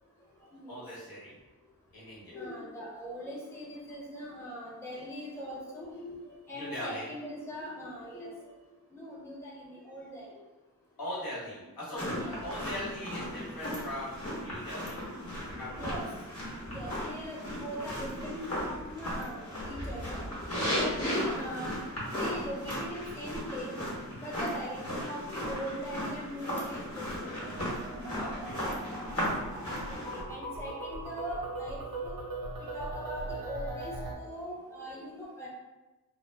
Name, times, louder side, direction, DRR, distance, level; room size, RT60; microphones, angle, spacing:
voice 1, 0.7-1.3 1.9-2.4 6.5-7.1 11.0-12.0 12.4-15.0 15.4-15.9 16.8-17.0 20.8-21.1 27.9-28.6, left 1 dB, 80° left, -8 dB, 1.1 m, -40 dB
voice 2, 2.3-8.5 8.9-10.3 12.2-12.3 13.4-13.5 15.5-16.0 16.7-20.2 20.7-23.8 24.2-27.3 27.9-28.3 28.6-28.7 29.9-32.2 32.6-35.5, equal, 5° left, -5 dB, 0.6 m, -41 dB
sound 1, 12.0-30.2, equal, 40° left, 1.0 m, -36 dB
sound 2, 27.4-34.2, right 2 dB, 75° right, 0.6 m, -40 dB
2.1 x 2.0 x 3.2 m, 1.1 s
wide cardioid pair, 70°, 36 cm